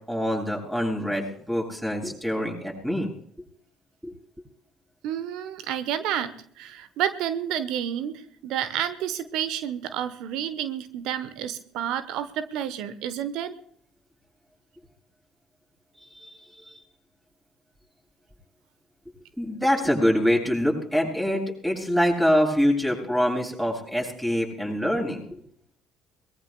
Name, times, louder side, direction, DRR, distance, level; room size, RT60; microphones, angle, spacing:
voice 1, 0.1-3.1 4.0-4.1 16.0-16.7 19.4-25.2, equal, 5° right, 0 dB, 7.9 m, -25 dB
voice 2, 5.0-13.5, right 10 dB, 65° right, 13 dB, 1.0 m, -30 dB
23.0 x 21.0 x 2.3 m, 0.63 s
figure-of-eight pair, 55°, 0 cm